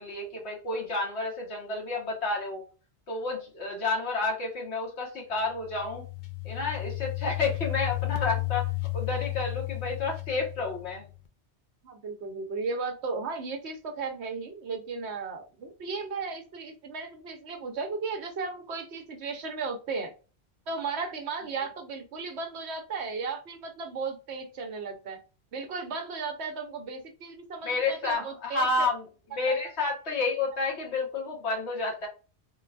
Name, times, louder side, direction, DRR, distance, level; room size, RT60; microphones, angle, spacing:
voice 1, 0.0-2.6 3.1-6.1 6.4-8.7 8.9-11.1 27.6-29.0 29.3-32.1, left 3 dB, 75° left, -1 dB, 1.5 m, -30 dB
sound 1, 5.5-11.2, left 25 dB, 55° left, 0.6 m, -33 dB
voice 2, 11.8-20.1 20.7-25.2 25.5-28.9 29.5-29.6, right 4 dB, 75° right, 4 dB, 1.0 m, -35 dB
3.8 x 2.3 x 2.4 m, 0.33 s
omnidirectional pair, 1.2 m